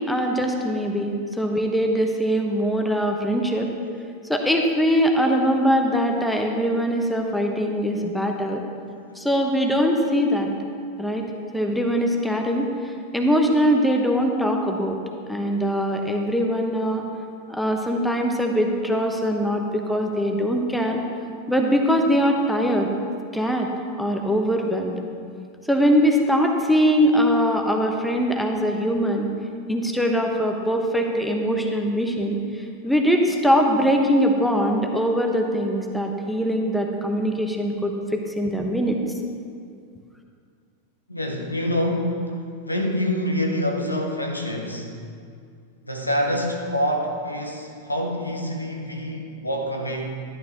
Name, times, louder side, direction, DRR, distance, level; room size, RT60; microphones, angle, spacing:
voice 1, 0.0-3.7 4.3-8.6 9.1-10.5 11.0-11.3 11.5-15.0 15.3-17.0 17.5-21.0 21.5-22.9 23.3-23.7 24.0-24.9 25.7-29.3 29.7-39.0, equal, ahead, 2 dB, 1.0 m, -22 dB
voice 2, 41.1-44.9 45.8-50.1, equal, 85° left, 1 dB, 1.2 m, -26 dB
12.5 x 11.0 x 3.0 m, 2.3 s
figure-of-eight pair, 90°, 0 cm